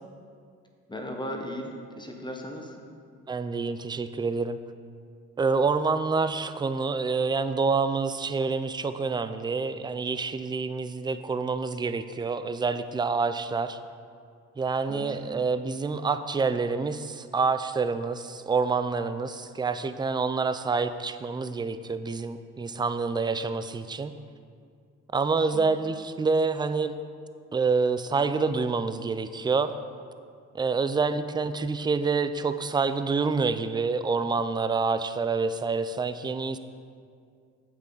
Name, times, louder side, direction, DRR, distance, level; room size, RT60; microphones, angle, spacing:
voice 1, 0.9-2.7 14.9-15.2 25.5-25.6, left 1 dB, 15° left, 1 dB, 1.0 m, -36 dB
voice 2, 3.3-4.6 5.4-13.8 14.6-24.1 25.1-27.0 27.5-29.7 30.5-36.6, right 4 dB, 15° right, 11 dB, 0.3 m, -27 dB
8.7 x 7.4 x 3.9 m, 2.2 s
cardioid pair, 90°, 30 cm